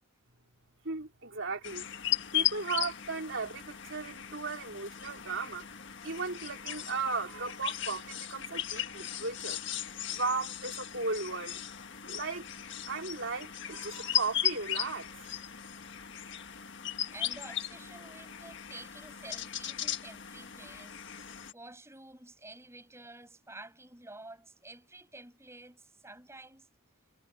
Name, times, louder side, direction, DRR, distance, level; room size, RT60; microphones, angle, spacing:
voice 1, 0.8-1.9 2.3-5.7 6.0-9.6 10.1-11.6 12.1-12.4 12.9-15.7, right 4 dB, 55° right, 3.9 m, -36 dB
sound 1, 1.6-21.5, left 11 dB, 55° left, 1.6 m, -37 dB
voice 2, 16.5-21.1 21.5-26.7, right 2 dB, 10° right, 6.5 m, -50 dB
head